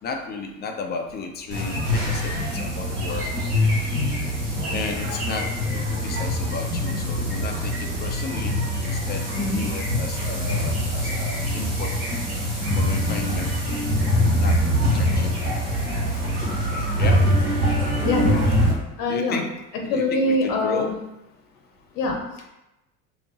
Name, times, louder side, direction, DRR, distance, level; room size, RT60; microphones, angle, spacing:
voice 1, 0.0-3.3 4.2-4.3 4.7-12.3 12.7-13.5 14.1-15.4 16.1-16.2 17.0-17.3 19.1-21.0, left 4 dB, 25° left, 3 dB, 0.4 m, -34 dB
sound 1, 1.5-18.7, equal, 85° right, 1.2 m, -24 dB
voice 2, 9.3-9.6 16.4-16.9 18.0-18.4 19.0-19.4 19.9-20.9 22.0-22.2, left 2 dB, 50° left, 1 dB, 0.9 m, -24 dB
3.4 x 2.6 x 2.8 m, 0.93 s
figure-of-eight pair, 65°, 43 cm